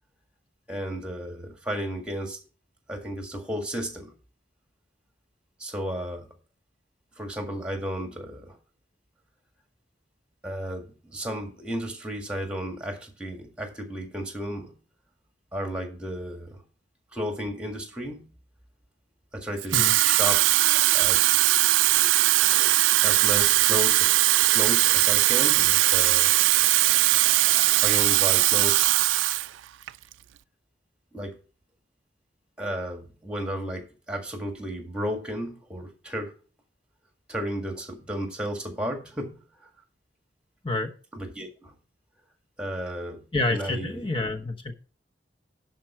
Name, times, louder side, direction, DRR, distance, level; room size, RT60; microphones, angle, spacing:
voice 1, 0.7-2.4 2.9-4.1 5.6-6.3 7.2-8.6 10.4-14.7 15.5-16.6 17.1-18.3 19.3-20.4 20.7-21.2 22.3-24.1 24.5-26.3 27.8-29.0 31.1-31.4 32.6-36.3 37.3-39.7 41.1-41.7 42.6-44.0, equal, 5° right, 4 dB, 1.7 m, -33 dB
Water tap faucet / Fill (with liquid), 19.6-29.5 29.9-30.1, right 17 dB, 90° right, 0.4 m, -20 dB
voice 2, 43.3-44.7, left 2 dB, 25° left, 4 dB, 1.1 m, -28 dB
11.0 x 4.5 x 5.9 m, 0.38 s
head